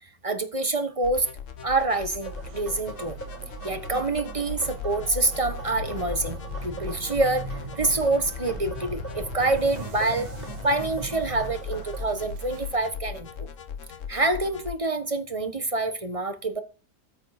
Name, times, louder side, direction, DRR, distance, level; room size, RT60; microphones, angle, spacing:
voice 1, 0.2-1.3 1.6-3.2 3.6-13.5 14.1-16.6, right 2 dB, 25° right, 1.2 m, -26 dB
sound 1, 1.0-14.7, left 8 dB, 55° left, 1.2 m, -39 dB
sound 2, 2.1-12.8, right 5 dB, 60° right, 1.2 m, -42 dB
sound 3, 2.2-12.1, right 2 dB, 10° left, 3.5 m, -42 dB
14.0 x 7.7 x 4.2 m
omnidirectional pair, 1.7 m